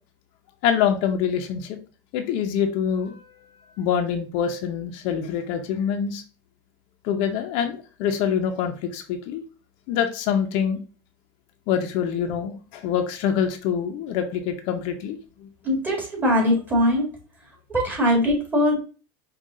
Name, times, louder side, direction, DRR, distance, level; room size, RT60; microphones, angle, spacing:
voice 1, 0.6-1.8 2.1-3.3 3.8-6.2 7.0-9.4 9.9-10.8 11.7-15.5, left 8 dB, 60° left, 6 dB, 0.6 m, -25 dB
voice 2, 15.6-17.1 17.7-18.8, left 1 dB, 15° right, -3 dB, 2.1 m, -21 dB
5.4 x 2.4 x 3.6 m, 0.36 s
supercardioid pair, 130°, 11 cm